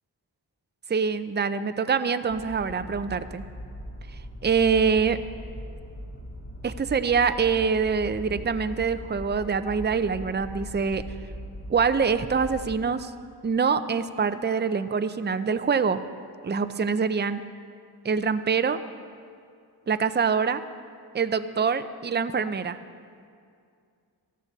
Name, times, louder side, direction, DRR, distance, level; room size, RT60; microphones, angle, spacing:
voice 1, 0.9-3.4 4.4-5.2 6.6-11.0 11.7-13.1 13.4-16.0 16.4-17.4 18.0-18.8 19.9-20.6 21.1-22.8, right 5 dB, 25° right, 11 dB, 0.6 m, -25 dB
sound 1, 2.3-12.7, equal, 30° left, 1.5 m, -40 dB
15.5 x 14.0 x 4.0 m, 2.3 s
cardioid pair, 55°, 42 cm